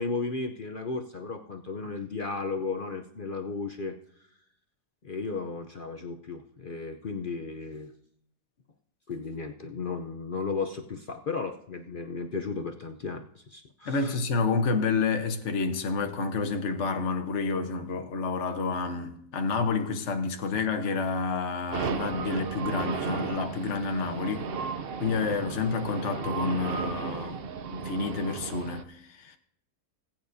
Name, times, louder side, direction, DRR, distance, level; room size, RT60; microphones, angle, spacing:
voice 1, 0.0-4.0 5.0-7.9 9.1-14.2, left 4 dB, 65° left, 0.5 m, -34 dB
voice 2, 13.8-24.5 25.0-27.4 27.7-29.4, left 4 dB, 50° left, 1.3 m, -29 dB
sound 1, 21.7-28.8, right 5 dB, 65° right, 0.5 m, -34 dB
20.0 x 9.0 x 2.7 m
omnidirectional pair, 1.8 m